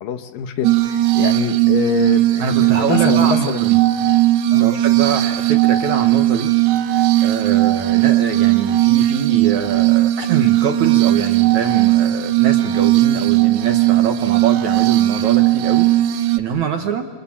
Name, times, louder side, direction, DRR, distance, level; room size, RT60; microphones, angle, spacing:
voice 1, 0.0-3.6 4.5-4.7, left 8 dB, 70° left, 8 dB, 2.6 m, -25 dB
Glass, 0.6-16.4, right 15 dB, 85° right, 3.2 m, -17 dB
voice 2, 2.4-3.8 4.6-6.5 7.2-17.1, right 7 dB, 65° right, 5 dB, 2.1 m, -24 dB
29.0 x 25.5 x 7.3 m, 1.4 s
omnidirectional pair, 4.6 m